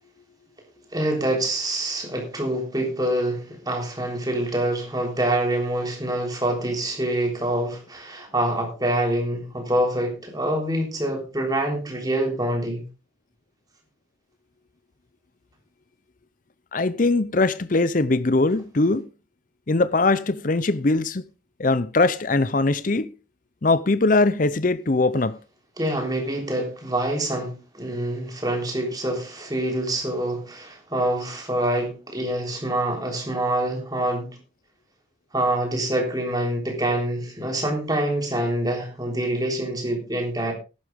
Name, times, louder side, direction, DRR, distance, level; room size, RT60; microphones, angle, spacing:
voice 1, 0.9-12.8 25.8-34.4 35.3-40.5, right 1 dB, 20° right, 3.5 m, -26 dB
voice 2, 16.7-19.1 19.7-21.2 21.6-23.1 23.6-25.4, left 3 dB, 40° left, 0.6 m, -21 dB
14.0 x 11.5 x 3.6 m
head